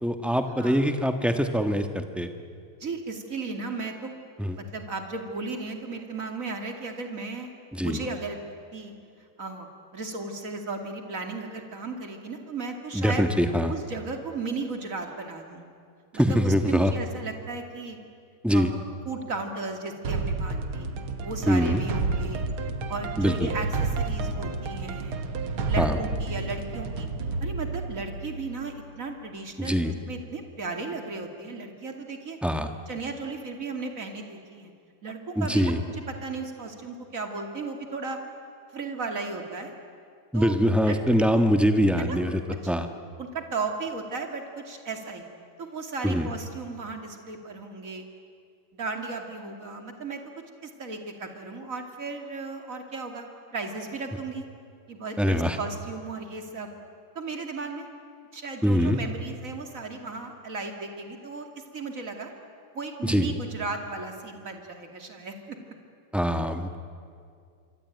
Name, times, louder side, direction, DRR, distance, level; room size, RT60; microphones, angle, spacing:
voice 1, 0.0-2.3 4.4-4.6 7.7-8.0 12.9-13.7 16.1-16.9 18.4-18.7 21.5-21.8 23.2-23.5 25.8-26.0 29.6-29.9 32.4-32.7 35.4-35.8 40.3-42.4 42.7-42.9 46.0-46.3 55.2-55.6 58.6-59.0 63.0-63.3 66.1-66.8, equal, ahead, 6 dB, 0.8 m, -23 dB
voice 2, 2.8-4.2 4.5-7.5 7.8-8.4 8.7-8.9 9.4-9.7 9.9-13.3 13.7-15.7 16.1-18.0 18.5-18.8 19.0-20.9 21.2-22.5 22.9-25.2 25.6-27.1 27.4-32.4 32.9-34.7 35.0-38.2 38.7-39.7 40.3-40.6 40.8-41.4 42.0-42.2 42.5-42.6 43.2-45.3 45.6-48.0 48.7-50.2 50.6-54.5 54.9-56.7 57.1-57.9 58.3-61.5 61.7-62.3 62.7-65.6, right 3 dB, 40° right, 4 dB, 2.9 m, -35 dB
sound 1, 20.0-28.9, right 3 dB, 70° right, 2.2 m, -30 dB
26.0 x 24.5 x 9.3 m, 2.3 s
omnidirectional pair, 2.4 m